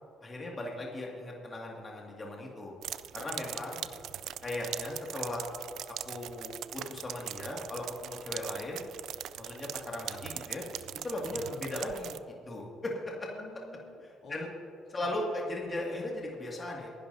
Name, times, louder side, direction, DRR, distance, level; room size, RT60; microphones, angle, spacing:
voice 1, 0.2-2.7 3.1-3.8 4.4-5.5 6.0-8.8 9.4-10.6 11.0-12.1 12.5-13.3 14.3-14.5 14.9-16.9, left 1 dB, 25° left, -2 dB, 2.0 m, -37 dB
sound 1, 2.8-12.2, right 11 dB, 70° right, 0.3 m, -41 dB
voice 2, 3.2-3.8 4.1-4.2 11.3-11.7 13.3-14.5 14.9-15.2, left 3 dB, 55° left, -1 dB, 2.8 m, -49 dB
29.0 x 11.0 x 2.7 m, 2.5 s
cardioid pair, 135°, 0 cm